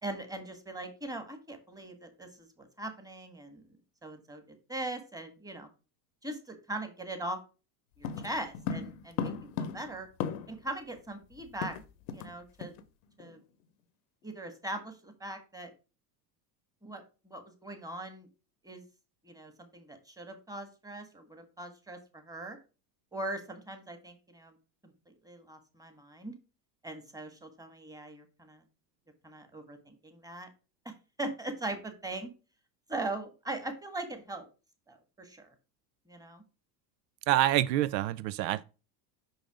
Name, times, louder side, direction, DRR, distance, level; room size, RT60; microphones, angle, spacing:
voice 1, 0.0-3.8 4.0-5.7 6.2-7.4 8.0-9.3 9.6-10.1 10.5-11.8 12.1-12.7 13.2-13.4 14.2-15.7 16.8-18.3 18.6-18.8 19.2-22.6 23.1-24.6 24.8-26.3 26.8-28.6 29.2-30.5 30.8-30.9 31.2-32.3 32.9-34.5 34.9-35.5 36.1-36.4, right 2 dB, 5° right, 1.6 m, -40 dB
sound 1, 8.0-10.7 11.0-11.1 11.3-12.3 12.6-12.8 13.2-13.4, left 7 dB, 75° left, 0.9 m, -37 dB
voice 2, 37.3-38.6, right 14 dB, 80° right, 0.6 m, -27 dB
5.6 x 5.5 x 4.9 m
supercardioid pair, 95°, 49 cm